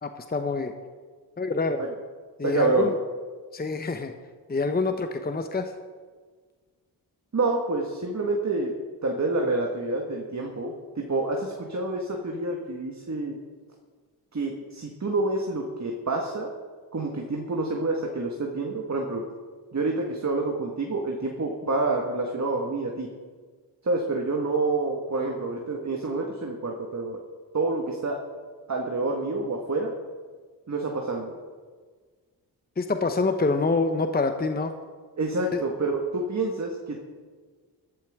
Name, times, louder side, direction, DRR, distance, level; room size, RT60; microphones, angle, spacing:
voice 1, 0.0-0.7 1.4-1.8 2.4-2.9 3.5-4.1 4.5-5.7 32.8-34.7 35.5-35.6, left 3 dB, 20° left, 7 dB, 0.9 m, -26 dB
voice 2, 2.4-2.9 7.3-8.7 9.0-13.3 14.3-16.5 16.9-19.2 19.7-23.1 23.8-27.2 27.5-28.2 28.7-29.9 30.7-31.3 35.2-37.0, right 2 dB, 35° right, 1 dB, 1.7 m, -28 dB
13.5 x 12.0 x 3.7 m, 1.5 s
supercardioid pair, 50°, 46 cm